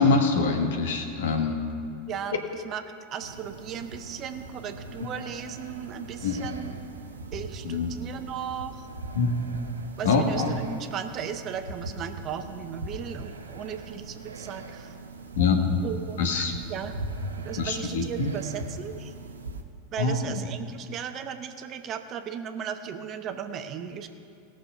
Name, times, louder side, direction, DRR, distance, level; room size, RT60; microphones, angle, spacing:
voice 1, 0.0-1.6 5.0-5.1 6.2-6.4 7.6-7.9 9.1-9.4 10.0-10.5 15.4-15.8 16.2-16.5 17.6-18.3 20.0-20.2, left 4 dB, 65° left, 4 dB, 1.4 m, -24 dB
voice 2, 2.1-2.8 3.1-6.7 7.3-8.9 10.0-15.0 15.8-17.0 17.4-19.1 19.9-24.1, right 8 dB, 40° right, 7 dB, 0.9 m, -36 dB
sound 1, 3.2-19.6, right 2 dB, 85° right, 0.9 m, -40 dB
17.5 x 6.5 x 5.6 m, 2.5 s
figure-of-eight pair, 90°, 0 cm